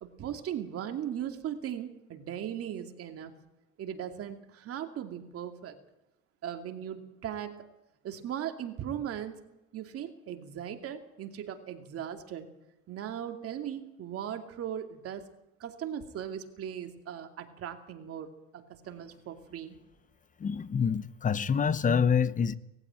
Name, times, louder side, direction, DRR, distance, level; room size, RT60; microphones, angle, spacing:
voice 1, 0.0-3.3 3.8-5.8 6.4-7.5 8.0-9.4 9.7-12.5 12.9-15.2 15.6-19.8, right 9 dB, 50° right, 6 dB, 2.6 m, -38 dB
voice 2, 20.4-22.6, left 6 dB, 25° left, 16 dB, 0.9 m, -26 dB
19.0 x 16.0 x 9.0 m, 0.95 s
cardioid pair, 115°, 29 cm